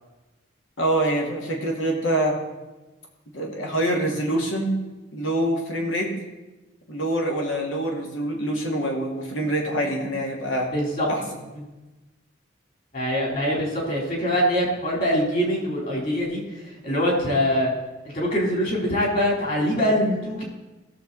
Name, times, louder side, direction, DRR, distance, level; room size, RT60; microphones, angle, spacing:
voice 1, 0.8-2.4 3.3-4.8 5.1-6.1 6.9-10.7 11.1-11.2, right 1 dB, 85° left, 0 dB, 2.5 m, -25 dB
voice 2, 10.7-11.1 12.9-16.4 16.8-17.7 18.0-20.4, equal, 45° left, -2 dB, 3.9 m, -23 dB
16.5 x 7.1 x 4.2 m, 1.1 s
head